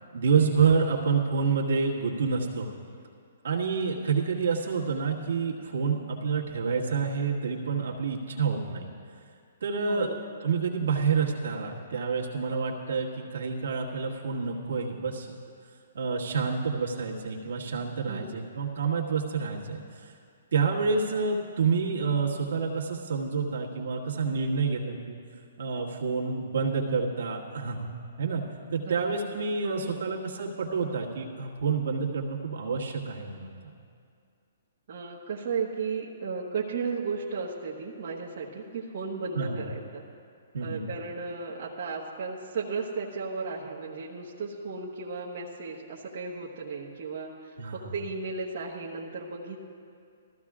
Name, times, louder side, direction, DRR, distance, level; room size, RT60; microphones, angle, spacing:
voice 1, 0.1-2.7 3.4-8.9 9.6-10.1 10.4-15.3 15.9-20.1 20.5-25.2 25.6-27.9 28.2-28.4 28.7-33.7 39.3-39.6 40.5-40.8 47.6-47.9, right 5 dB, 75° right, -2 dB, 1.7 m, -28 dB
voice 2, 29.6-30.0 34.9-40.0 40.6-49.6, right 4 dB, 55° right, -5 dB, 1.2 m, -35 dB
19.0 x 14.5 x 2.5 m, 2.3 s
hypercardioid pair, 135°, 0 cm